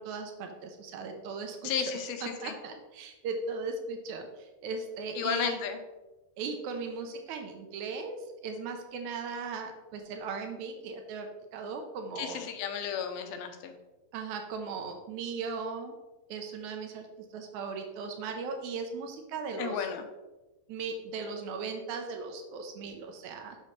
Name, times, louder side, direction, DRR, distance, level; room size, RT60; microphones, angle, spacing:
voice 1, 0.0-1.9 2.2-5.6 6.4-8.2 8.4-12.5 14.1-15.9 16.3-19.9 20.7-23.6, right 4 dB, 80° right, 4 dB, 1.7 m, -38 dB
voice 2, 1.6-2.2 2.4-2.5 5.2-5.8 12.2-13.7 19.6-20.0, left 8 dB, 90° left, 6 dB, 2.6 m, -33 dB
8.2 x 5.7 x 3.1 m, 1.1 s
omnidirectional pair, 4.2 m